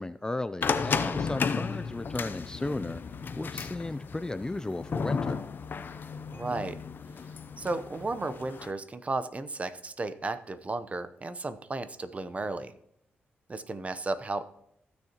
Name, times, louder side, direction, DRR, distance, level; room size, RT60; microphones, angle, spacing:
voice 1, 0.0-3.0 3.4-5.4, left 2 dB, 15° left, 13 dB, 0.4 m, -34 dB
sound 1, 0.6-8.7, left 5 dB, 55° left, 0.6 m, -34 dB
voice 2, 6.3-6.8 7.6-12.7 13.5-14.4, right 3 dB, 35° right, 11 dB, 0.7 m, -34 dB
15.0 x 6.6 x 2.9 m, 0.71 s
cardioid pair, 80°, 4 cm